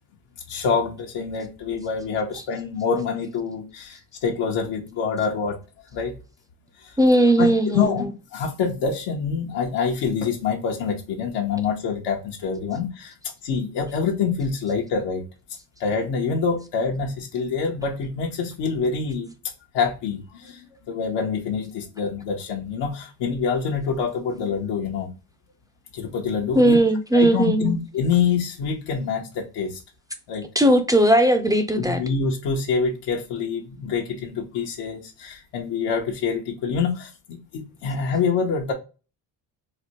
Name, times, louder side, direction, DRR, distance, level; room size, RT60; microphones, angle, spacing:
voice 1, 0.5-5.6 5.9-6.2 6.8-7.0 7.4-8.1 8.3-13.1 13.4-15.2 15.8-19.3 19.7-25.1 25.9-26.8 27.1-29.8 30.3-30.4 31.9-38.7, left 5 dB, 85° left, 0.8 m, -26 dB
voice 2, 7.0-8.1 26.5-27.7 30.6-32.0, right 1 dB, 10° right, 0.3 m, -18 dB
4.1 x 2.1 x 2.9 m
cardioid pair, 100°, 42 cm